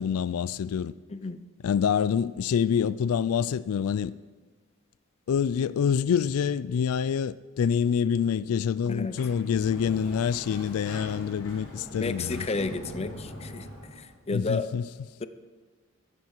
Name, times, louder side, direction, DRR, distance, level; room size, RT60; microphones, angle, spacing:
voice 1, 0.0-0.9 1.6-4.1 5.3-12.4 14.3-14.8, left 7 dB, 90° left, 0.3 m, -26 dB
voice 2, 1.1-1.4 8.9-9.2 11.9-13.7 14.0-14.7 15.2-15.3, left 3 dB, 30° left, 0.5 m, -32 dB
Sliding door, 8.8-14.1, equal, 65° left, 3.5 m, -42 dB
14.5 x 12.0 x 4.6 m
head